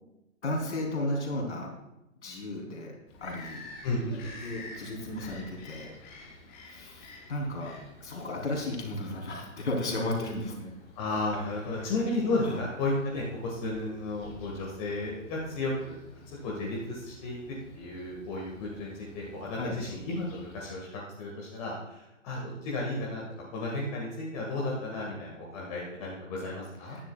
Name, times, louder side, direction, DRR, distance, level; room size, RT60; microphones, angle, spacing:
voice 1, 0.4-1.7 2.2-2.9 3.2-3.6 4.4-6.0 6.6-7.7 8.0-10.7 11.3-11.9 12.4-12.6 19.6-19.8 26.9-27.1, left 1 dB, 55° left, 0 dB, 3.3 m, -34 dB
Bird vocalization bird call bird song, 3.1-20.8, left 2 dB, 10° left, 0.5 m, -50 dB
voice 2, 3.8-4.2 11.0-15.9 16.4-23.2 23.5-27.0, left 2 dB, 30° left, -3 dB, 1.8 m, -33 dB
15.0 x 10.5 x 2.4 m, 0.91 s
figure-of-eight pair, 130°, 40 cm